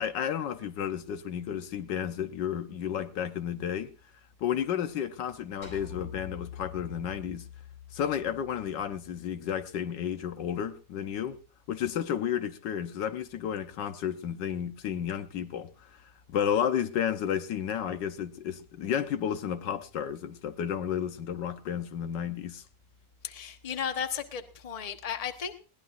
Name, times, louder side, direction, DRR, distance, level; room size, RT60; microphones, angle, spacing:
voice 1, 0.0-3.9 4.4-7.5 7.9-11.4 11.7-15.7 16.3-22.6, left 9 dB, 75° left, 1.5 m, -32 dB
sound 1, 5.6-10.0, left 9 dB, 50° left, 6.5 m, -46 dB
voice 2, 23.2-25.5, left 8 dB, 25° left, 0.9 m, -34 dB
21.0 x 17.5 x 2.6 m
omnidirectional pair, 1.9 m